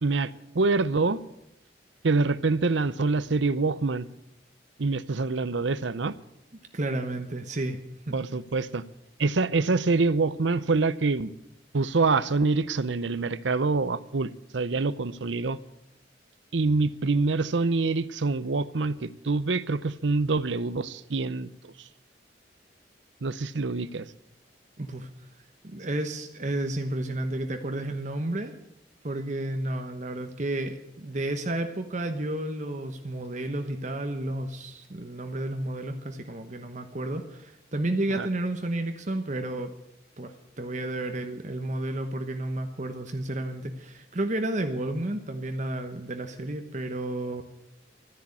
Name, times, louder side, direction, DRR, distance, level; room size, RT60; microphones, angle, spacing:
voice 1, 0.0-1.2 2.0-4.1 4.8-6.1 8.1-8.8 9.2-11.3 11.7-15.6 16.5-21.7 23.2-24.1 38.1-38.3, right 3 dB, 80° right, 16 dB, 0.7 m, -26 dB
voice 2, 6.7-7.8 8.1-8.2 24.8-25.1 25.6-28.5 29.0-39.7 40.2-47.4, right 1 dB, 40° right, 6 dB, 1.0 m, -31 dB
13.0 x 10.5 x 8.5 m, 0.81 s
head